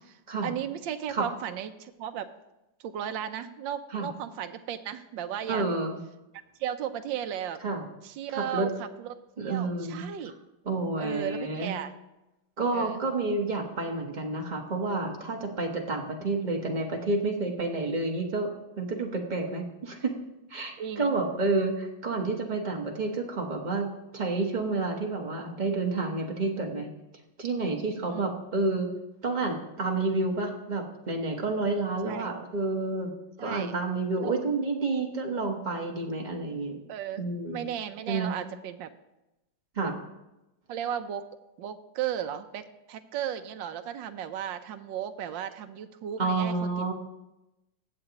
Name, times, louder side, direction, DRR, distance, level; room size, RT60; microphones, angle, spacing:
voice 1, 0.1-2.3 2.8-5.6 6.6-7.6 8.0-9.2 9.4-10.3 11.0-11.9 12.7-13.0 20.8-21.2 28.1-28.3 32.1-32.3 33.4-33.7 34.2-34.4 36.9-37.2 37.5-38.9 39.8-39.9 40.7-41.3 41.6-46.8, right 9 dB, 75° right, 9 dB, 1.4 m, -35 dB
voice 2, 5.5-6.0 7.6-7.8 8.3-8.7 9.4-10.1 10.6-11.7 12.6-18.5 18.8-20.1 20.5-23.9 24.1-26.9 27.4-28.9 29.2-33.1 33.4-36.8 37.2-37.6 38.1-38.3 39.8-39.9 46.2-46.9, right 3 dB, 30° right, 1 dB, 1.1 m, -29 dB
19.5 x 7.7 x 2.9 m, 0.97 s
omnidirectional pair, 2.1 m